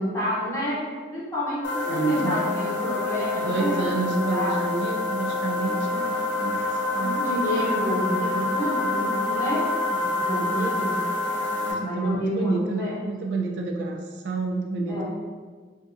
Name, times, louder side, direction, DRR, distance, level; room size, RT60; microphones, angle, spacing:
voice 1, 0.0-4.6 7.0-9.6 10.1-10.9 11.8-13.0 14.9-15.0, equal, 15° left, -9 dB, 0.8 m, -29 dB
sound 1, 1.6-11.7, left 2 dB, 90° left, 0.5 m, -27 dB
voice 2, 1.9-2.4 3.3-6.6 6.9-7.2 10.0-10.7 11.5-15.0, right 3 dB, 80° right, 1 dB, 0.3 m, -29 dB
2.6 x 2.2 x 2.4 m, 1.5 s
head